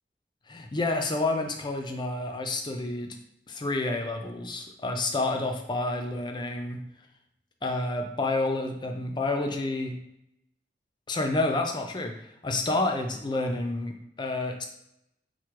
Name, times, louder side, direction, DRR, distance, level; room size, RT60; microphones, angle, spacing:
voice 1, 0.5-3.2 3.5-6.8 7.6-10.0 11.1-14.7, left 2 dB, 25° left, 4 dB, 0.5 m, -29 dB
4.7 x 2.2 x 4.5 m, 0.80 s
head